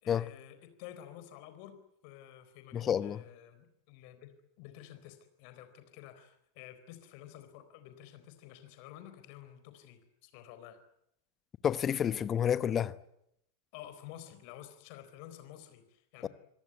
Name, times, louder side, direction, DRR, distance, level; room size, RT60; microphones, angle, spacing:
voice 1, 0.0-1.7 2.0-10.8 13.7-16.3, left 12 dB, 45° left, 4.1 m, -51 dB
voice 2, 2.7-3.2 11.6-12.9 16.2-16.3, left 9 dB, 25° left, 1.1 m, -29 dB
26.5 x 18.0 x 9.6 m
figure-of-eight pair, 90°, 0 cm